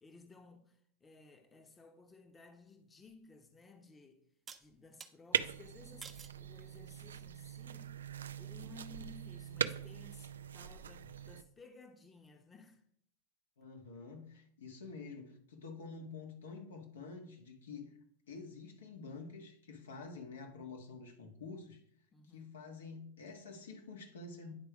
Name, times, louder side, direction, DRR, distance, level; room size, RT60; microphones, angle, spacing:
voice 1, 0.0-4.2 4.6-8.0 8.4-12.8 22.1-22.5, left 3 dB, 20° left, 0.9 m, -57 dB
sound 1, 3.1-3.2 4.5-5.1 6.0-6.4 7.0-7.5, right 5 dB, 20° right, 0.7 m, -51 dB
sound 2, 5.3-11.4, right 8 dB, 90° right, 0.3 m, -41 dB
voice 2, 13.6-17.9 18.3-21.8 22.3-24.5, left 4 dB, 85° left, 1.5 m, -48 dB
9.9 x 3.3 x 5.0 m
hypercardioid pair, 110°, 0 cm